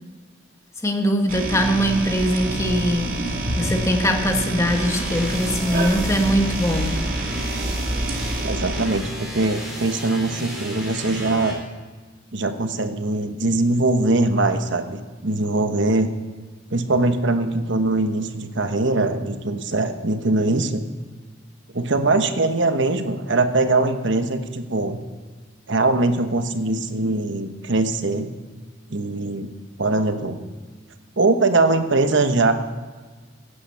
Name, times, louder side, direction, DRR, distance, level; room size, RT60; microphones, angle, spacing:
voice 1, 0.8-7.0, equal, 15° left, 4 dB, 1.4 m, -22 dB
sound 1, 1.3-8.9, right 1 dB, 45° right, 2.3 m, -26 dB
sound 2, 4.7-11.5, equal, ahead, 4.3 m, -35 dB
voice 2, 8.4-11.6 12.3-16.1 16.7-20.8 21.7-25.0 25.7-28.3 28.9-29.5 29.8-30.4 31.2-32.5, right 2 dB, 65° right, 8 dB, 1.2 m, -21 dB
16.5 x 9.9 x 5.7 m, 1.4 s
head